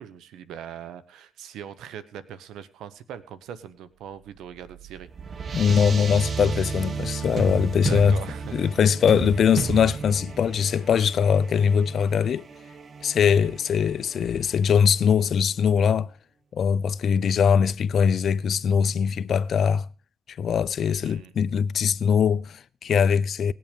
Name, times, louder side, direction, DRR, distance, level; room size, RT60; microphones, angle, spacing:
voice 1, 0.0-5.1 7.8-8.7 13.3-13.5 20.9-21.3, right 9 dB, 85° right, 1.0 m, -41 dB
sound 1, 4.4-15.0, right 5 dB, 45° right, 1.1 m, -33 dB
voice 2, 5.5-8.2 8.5-12.5 13.0-16.1 16.5-19.9 20.3-23.5, left 7 dB, 60° left, 0.5 m, -22 dB
18.0 x 7.8 x 5.3 m
cardioid pair, 90°, 0 cm